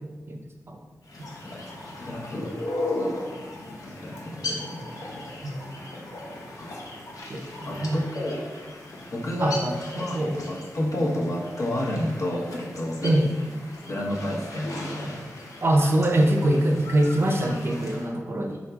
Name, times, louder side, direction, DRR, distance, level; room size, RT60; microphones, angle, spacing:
sound 1, 1.0-18.1, left 2 dB, 80° left, 0.7 m, -37 dB
voice 1, 2.0-2.5 4.0-5.2 6.6-6.9 7.6-8.5 9.1-13.2 13.9-15.2, left 1 dB, 55° left, -4 dB, 0.9 m, -30 dB
voice 2, 7.7-8.0 9.4-10.4 13.0-13.3 15.6-18.6, right 1 dB, 45° right, 3 dB, 0.5 m, -23 dB
4.5 x 3.9 x 2.3 m, 1.3 s
wide cardioid pair, 85°, 6 cm